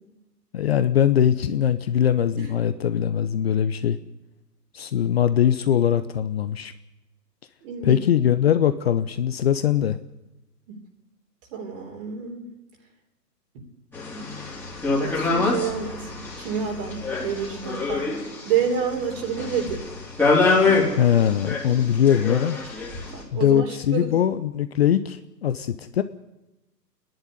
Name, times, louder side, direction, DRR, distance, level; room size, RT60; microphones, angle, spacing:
voice 1, 0.5-4.0 4.7-6.7 7.8-10.0 21.0-22.6 23.3-26.0, left 9 dB, 40° left, 12 dB, 0.8 m, -21 dB
voice 2, 7.6-8.0 11.5-12.5 13.5-13.6 15.0-19.8 23.1-24.1, right 7 dB, 35° right, 2 dB, 3.7 m, -29 dB
sound 1, 13.9-23.2, left 3 dB, 5° left, 3.5 m, -25 dB
27.5 x 10.5 x 9.5 m, 0.96 s
figure-of-eight pair, 135°, 49 cm